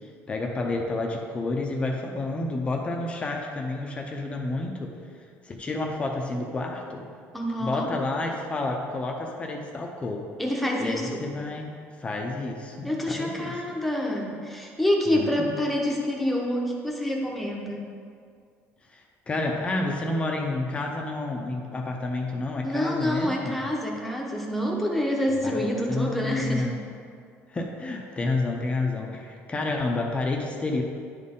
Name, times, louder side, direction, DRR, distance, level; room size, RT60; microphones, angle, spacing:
voice 1, 0.3-4.9 5.4-7.1 7.6-10.3 10.8-11.7 12.0-13.6 15.1-15.6 18.9-23.6 25.4-25.6 25.9-26.8 27.5-30.8, left 2 dB, 20° left, 1 dB, 0.6 m, -30 dB
voice 2, 7.3-7.9 10.4-11.2 12.8-17.9 22.6-26.7, left 1 dB, ahead, -1 dB, 1.0 m, -27 dB
10.5 x 4.2 x 3.7 m, 2.2 s
cardioid pair, 135°, 5 cm